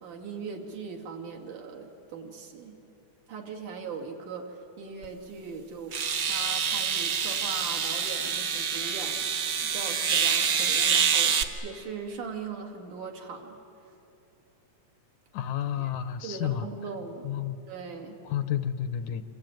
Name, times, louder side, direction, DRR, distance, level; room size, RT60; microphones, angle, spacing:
voice 1, 0.0-2.8 3.3-6.0 6.3-13.6 15.8-15.9 16.2-17.4 17.7-18.2, right 5 dB, 70° right, 0 dB, 3.9 m, -40 dB
sound 1, 5.0-5.1 5.9-11.4, right 7 dB, 50° right, 1.4 m, -26 dB
voice 2, 15.3-16.7 17.2-17.6 18.3-19.2, left 10 dB, 75° left, 11 dB, 2.2 m, -31 dB
28.0 x 23.0 x 9.2 m, 2.8 s
omnidirectional pair, 3.6 m